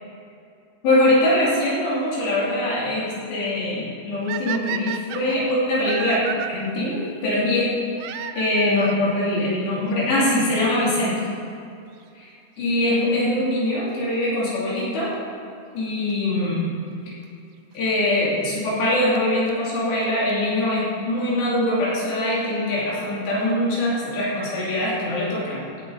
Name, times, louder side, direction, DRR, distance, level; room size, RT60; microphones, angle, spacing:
voice 1, 0.8-11.2 12.2-15.1 15.7-16.7 17.8-25.6, left 1 dB, 75° left, -7 dB, 5.3 m, -23 dB
sound 1, 4.3-6.5 8.0-9.0 10.0-10.1 10.8-10.9 11.0-11.1 13.0-13.3 16.1-16.2 17.2-17.3 18.8-18.9 19.2-19.3 19.5-19.6 19.8-19.9 20.0-20.1 20.3-20.4 20.6-20.7, right 10 dB, 80° right, 2.3 m, -32 dB
17.5 x 11.5 x 4.0 m, 2.5 s
omnidirectional pair, 5.0 m